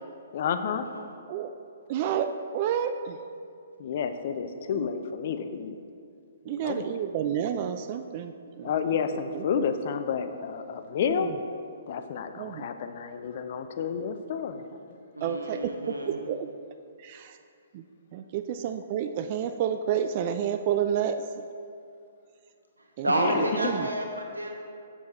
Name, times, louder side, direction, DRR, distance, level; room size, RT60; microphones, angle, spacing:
voice 1, 0.3-0.9 3.8-5.8 6.5-7.0 8.6-11.3 11.9-14.9 23.2-23.5, left 7 dB, 50° left, 9 dB, 0.5 m, -30 dB
voice 2, 1.9-3.2 4.7-4.9 6.5-8.7 9.3-9.7 11.0-11.3 12.4-12.7 15.2-16.5 17.0-17.4 17.7-17.8 18.1-21.2 23.0-23.9, right 9 dB, 40° right, 8 dB, 0.3 m, -30 dB
voice 3, 15.2-16.2 23.0-24.5, right 1 dB, 90° right, 2 dB, 1.1 m, -30 dB
7.1 x 6.6 x 4.1 m, 2.4 s
figure-of-eight pair, 125°, 0 cm